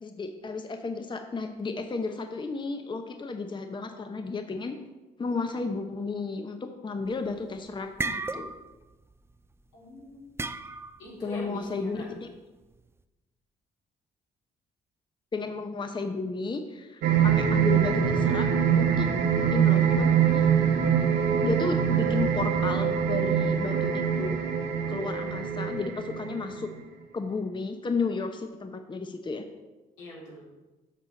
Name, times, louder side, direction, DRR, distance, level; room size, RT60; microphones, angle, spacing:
voice 1, 0.0-4.8 5.2-8.5 11.2-12.3 15.3-18.5 18.8-19.1 19.5-20.5 21.4-24.4 24.9-26.7 27.1-29.5, left 4 dB, 25° left, 6 dB, 0.7 m, -33 dB
sound 1, 7.1-7.4 7.7-8.8 9.1-9.4 10.4-11.1, right 3 dB, 15° right, 0.4 m, -33 dB
voice 2, 9.7-10.2 11.0-12.0 30.0-30.4, left 1 dB, 85° left, -5 dB, 2.7 m, -43 dB
sound 2, 17.0-26.8, right 7 dB, 75° right, 0.9 m, -24 dB
7.4 x 6.3 x 4.0 m, 1.1 s
hypercardioid pair, 55°, 18 cm